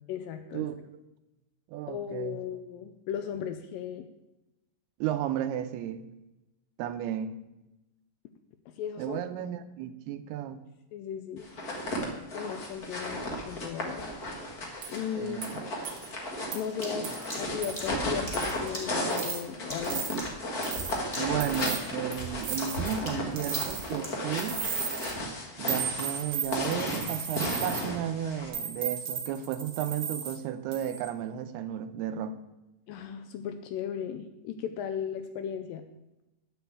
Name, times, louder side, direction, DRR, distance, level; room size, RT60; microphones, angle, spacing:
voice 1, 0.1-0.7 1.9-4.1 8.7-9.5 10.9-11.5 12.3-14.1 14.9-15.4 16.5-20.1 32.9-35.9, left 8 dB, 80° left, 8 dB, 2.1 m, -36 dB
voice 2, 1.7-2.4 5.0-6.1 6.8-7.3 9.0-10.6 15.1-15.6 21.2-24.6 25.6-32.4, right 10 dB, 90° right, 10 dB, 2.7 m, -33 dB
sound 1, 11.4-28.5, left 1 dB, 50° left, 1.0 m, -34 dB
sound 2, 14.8-15.0 15.4-15.5 15.8-16.1 16.5-16.6 17.0-17.3 17.6-17.9 18.3-18.7 19.1-19.4 19.8-20.1 20.6-21.0 21.4-21.8 22.4-23.0 23.4-24.0 24.3-25.1 25.7-27.8 28.5-30.4 30.7-31.1, right 7 dB, 65° right, 1.2 m, -35 dB
sound 3, 16.8-20.9 21.1-21.5 21.7-24.3, left 1 dB, 15° left, 1.7 m, -42 dB
7.9 x 7.0 x 8.0 m, 0.96 s
omnidirectional pair, 4.5 m